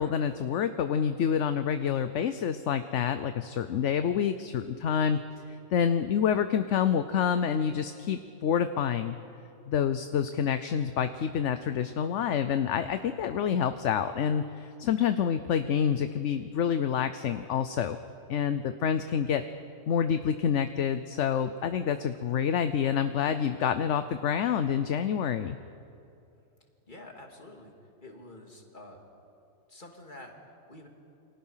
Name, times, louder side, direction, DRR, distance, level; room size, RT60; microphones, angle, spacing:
voice 1, 0.0-5.2 5.7-9.1 9.7-18.0 18.3-19.4 19.9-25.6, left 8 dB, 60° left, 10 dB, 1.0 m, -27 dB
voice 2, 26.9-27.7 28.0-29.0 29.7-30.9, left 1 dB, 35° left, 1 dB, 2.9 m, -48 dB
29.0 x 25.0 x 5.7 m, 2.7 s
omnidirectional pair, 1.5 m